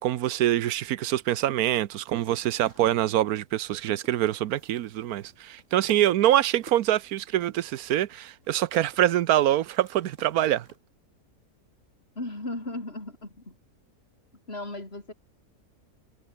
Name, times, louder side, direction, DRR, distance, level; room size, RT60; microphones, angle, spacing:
voice 1, 0.0-10.7, right 12 dB, 75° right, 1.2 m, -25 dB
sound 1, 1.5-10.8, right 2 dB, 50° right, 5.4 m, -55 dB
voice 2, 12.2-13.5 14.5-15.1, left 2 dB, 40° left, 5.3 m, -36 dB
omnidirectional pair, 1.6 m